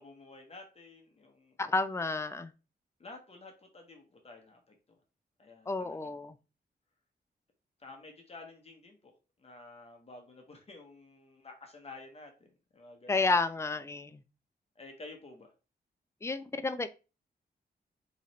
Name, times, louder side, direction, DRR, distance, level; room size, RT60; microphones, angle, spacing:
voice 1, 0.0-1.6 3.0-4.7 5.4-6.1 7.8-9.1 9.4-13.2 14.8-15.5, left 3 dB, 35° left, 2 dB, 1.0 m, -51 dB
voice 2, 1.6-2.5 5.7-6.3 13.1-14.2 16.2-16.9, left 3 dB, 15° left, 11 dB, 0.4 m, -31 dB
4.0 x 3.0 x 4.2 m, 0.32 s
wide cardioid pair, 125°, 17 cm